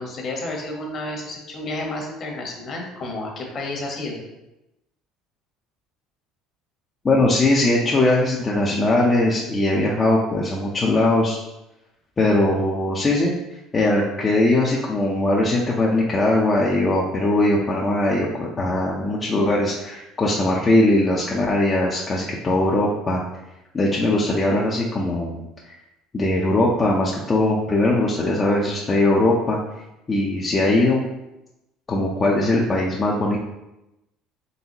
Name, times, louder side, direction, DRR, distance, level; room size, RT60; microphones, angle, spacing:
voice 1, 0.0-4.2, left 2 dB, 50° left, 0 dB, 1.2 m, -31 dB
voice 2, 7.0-11.4 12.2-13.3 13.7-23.2 23.7-25.7 26.1-29.6 30.1-31.0 31.9-33.4, left 2 dB, 30° left, -4 dB, 0.6 m, -20 dB
4.0 x 3.4 x 2.9 m, 0.93 s
supercardioid pair, 85°, 0 cm